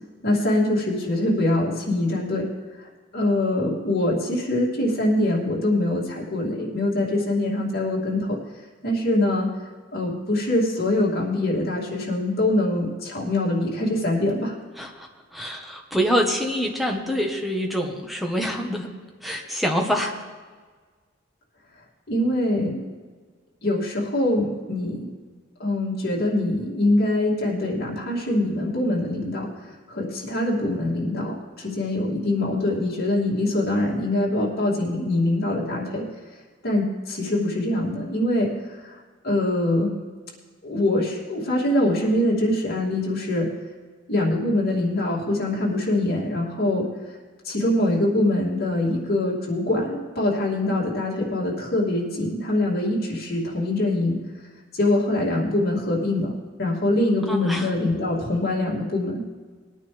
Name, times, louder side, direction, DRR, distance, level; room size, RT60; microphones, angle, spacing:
voice 1, 0.2-2.5 2.8-2.9 3.1-8.4 8.8-9.5 9.9-14.5 22.1-22.8 23.6-25.1 25.6-36.0 36.6-38.5 38.8-39.0 39.2-39.9 40.6-43.5 44.1-46.9 47.4-54.2 54.7-56.3 56.6-59.2, left 1 dB, 50° left, -3 dB, 2.7 m, -23 dB
voice 2, 14.8-18.9 19.2-20.1 57.3-57.7, equal, ahead, 1 dB, 1.3 m, -26 dB
20.0 x 9.3 x 3.4 m, 1.5 s
head